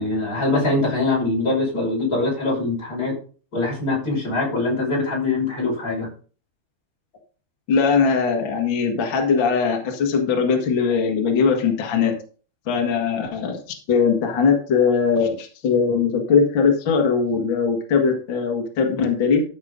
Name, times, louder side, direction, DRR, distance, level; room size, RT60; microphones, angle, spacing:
voice 1, 0.0-3.2 3.5-6.1, left 2 dB, 20° left, -3 dB, 6.2 m, -23 dB
voice 2, 7.7-12.1 12.7-13.6 13.9-19.4, left 5 dB, 50° left, 2 dB, 1.5 m, -20 dB
13.5 x 7.2 x 3.8 m, 0.39 s
omnidirectional pair, 4.7 m